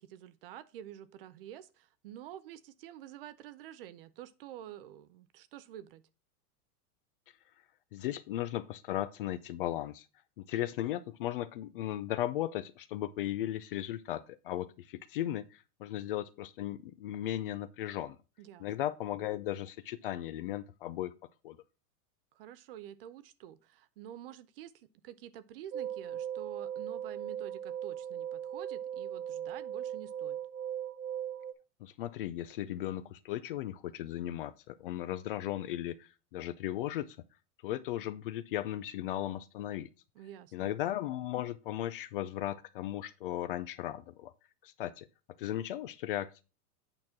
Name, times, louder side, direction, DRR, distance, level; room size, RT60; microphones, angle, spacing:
voice 1, 0.0-6.0 18.4-18.7 22.3-30.4 40.2-40.7, right 11 dB, 40° right, 0.5 m, -49 dB
voice 2, 7.9-10.1 10.4-18.2 18.6-21.1 21.4-21.6 31.8-37.2 37.6-39.9 40.5-44.3 44.6-45.1 45.4-46.4, left 13 dB, 40° left, 0.4 m, -36 dB
sound 1, 25.7-31.5, right 9 dB, 85° right, 1.1 m, -38 dB
8.9 x 6.0 x 3.5 m
supercardioid pair, 155°, 45 cm